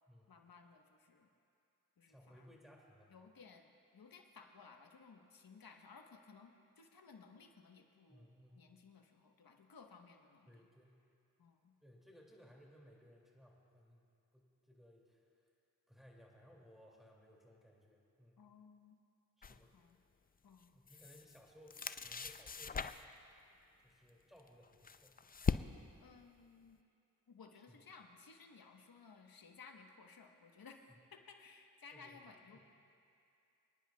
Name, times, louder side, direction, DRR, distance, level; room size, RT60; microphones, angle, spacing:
voice 1, 0.3-1.3 2.0-2.5 3.1-8.3 8.6-10.6 11.4-11.7 18.4-19.0 19.5-20.0 20.4-20.7 26.0-26.8 27.3-30.8 31.1-32.6, left 5 dB, 70° left, 3 dB, 1.2 m, -59 dB
voice 2, 2.1-3.1 8.1-8.7 10.5-11.0 11.8-14.0 14.3-15.4 15.9-18.5 19.4-19.8 20.7-23.2 23.8-25.2 27.7-27.8 31.9-32.2 32.5-32.6, equal, ahead, -2 dB, 2.5 m, -62 dB
sound 1, 19.4-19.6 20.6-21.4 21.7-23.2 24.4-26.0, left 5 dB, 25° left, 0.4 m, -40 dB
29.5 x 10.0 x 2.3 m, 2.6 s
cardioid pair, 40°, 37 cm